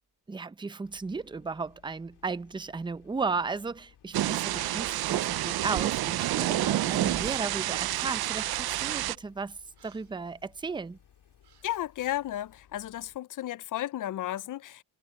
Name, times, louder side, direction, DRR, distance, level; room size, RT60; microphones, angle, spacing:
voice 1, 0.3-11.0, right 4 dB, 10° right, 0.5 m, -35 dB
sound 1, 0.8-13.2, left 10 dB, 80° left, 2.7 m, -61 dB
Thunder / Rain, 4.1-9.2, right 14 dB, 65° right, 0.5 m, -29 dB
sound 2, 5.8-8.0 8.3-8.7 9.8-10.1 11.4-11.7, right 10 dB, 85° right, 2.0 m, -46 dB
voice 2, 11.6-14.8, left 13 dB, 55° left, 0.5 m, -33 dB
wide cardioid pair, 140°, 39 cm